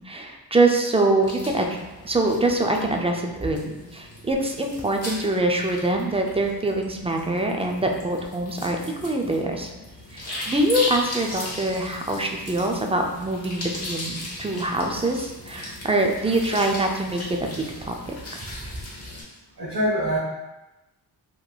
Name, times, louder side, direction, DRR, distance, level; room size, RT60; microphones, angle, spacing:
voice 1, 0.0-1.7 2.0-9.7 10.1-18.4, right 2 dB, 15° right, 2 dB, 0.3 m, -24 dB
sound 1, 1.2-19.2, left 1 dB, 35° left, 1.1 m, -37 dB
voice 2, 19.6-20.2, equal, 50° right, -10 dB, 1.2 m, -24 dB
3.0 x 2.5 x 2.3 m, 1.0 s
cardioid pair, 55°, 43 cm